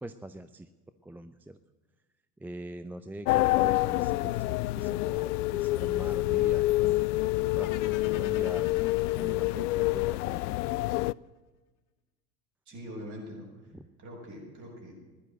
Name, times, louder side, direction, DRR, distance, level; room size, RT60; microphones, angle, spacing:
voice 1, 0.0-0.7 1.0-1.6 2.4-7.1 7.5-8.9 9.1-10.6 13.7-13.9, right 1 dB, 5° right, 11 dB, 0.5 m, -43 dB
sound 1, 3.3-11.1, left 18 dB, 70° left, 0.5 m, -27 dB
sound 2, 7.6-10.8, left 11 dB, 40° left, 1.5 m, -47 dB
voice 2, 12.7-13.7 14.0-14.9, equal, 40° right, 0 dB, 7.4 m, -43 dB
15.5 x 11.5 x 7.7 m, 1.2 s
hypercardioid pair, 85°, 47 cm